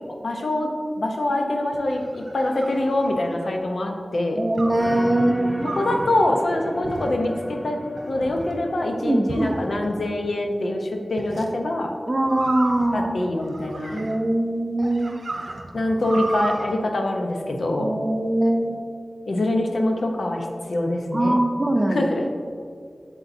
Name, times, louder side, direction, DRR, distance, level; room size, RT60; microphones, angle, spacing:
voice 1, 0.2-0.7 1.0-4.4 5.7-11.9 12.9-14.0 15.7-17.9 19.3-21.4 21.9-22.3, left 1 dB, 85° left, 2 dB, 0.8 m, -24 dB
sound 1, 1.7-3.6 4.6-4.9 5.6-6.1 6.8-7.4 8.0-8.6 9.3-10.1 11.2-11.5 12.3-14.3 14.8-16.7, right 2 dB, 75° right, 0.7 m, -34 dB
voice 2, 4.4-5.7 9.0-9.5 12.1-13.1 13.9-15.2 17.8-18.8 21.1-22.1, right 1 dB, 35° right, 4 dB, 0.7 m, -22 dB
sound 2, 4.8-10.3, equal, 20° right, 1.7 m, -36 dB
8.1 x 7.3 x 2.7 m, 2.3 s
wide cardioid pair, 55°, 0 cm